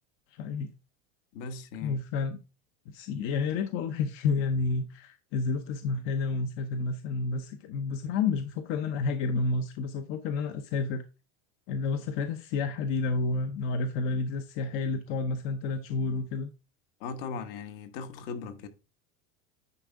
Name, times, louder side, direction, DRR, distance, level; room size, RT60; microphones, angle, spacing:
voice 1, 0.3-0.7 1.8-2.4 2.9-11.0 11.7-16.5, left 4 dB, 40° left, 0.7 m, -30 dB
voice 2, 1.3-2.0 17.0-18.7, left 5 dB, 60° left, 1.3 m, -38 dB
9.9 x 4.4 x 3.6 m
cardioid pair, 175°, 34 cm